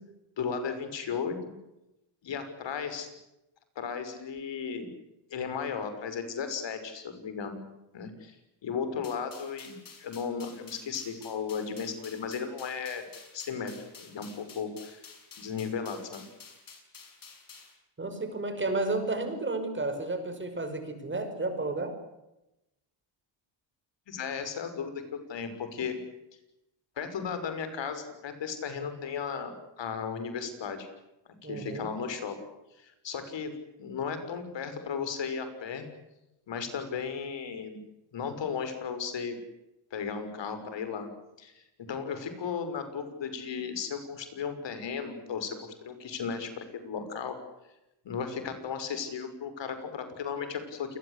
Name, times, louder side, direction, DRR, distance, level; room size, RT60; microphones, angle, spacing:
voice 1, 0.4-1.5 2.2-3.1 3.8-4.9 5.3-7.6 7.9-8.4 8.6-13.0 13.3-15.0 15.4-16.2 24.1-24.9 25.3-26.0 27.0-30.9 31.4-32.3 32.8-33.5 33.8-35.9 36.5-37.8 38.1-39.4 39.9-41.1 41.4-47.4 48.0-51.0, left 6 dB, 60° left, 9 dB, 6.2 m, -35 dB
sound 1, 9.0-17.7, left 5 dB, 40° left, 7.4 m, -51 dB
voice 2, 18.0-22.0 31.4-31.9, right 2 dB, 25° right, 7 dB, 5.7 m, -32 dB
28.5 x 20.5 x 8.4 m, 0.92 s
cardioid pair, 125°, 49 cm